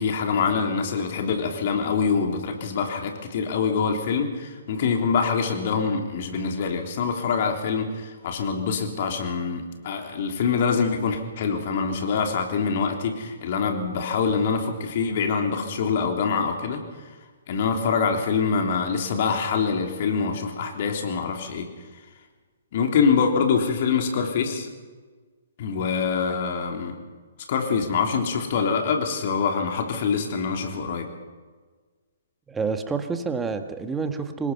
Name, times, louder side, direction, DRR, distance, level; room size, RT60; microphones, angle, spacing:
voice 1, 0.0-16.8 17.5-21.7 22.7-24.7 25.6-27.0 27.5-31.1, left 5 dB, 50° left, 3 dB, 3.5 m, -25 dB
voice 2, 32.5-34.5, right 5 dB, 10° right, 7 dB, 1.7 m, -28 dB
25.5 x 20.5 x 5.6 m, 1.4 s
figure-of-eight pair, 125°, 0 cm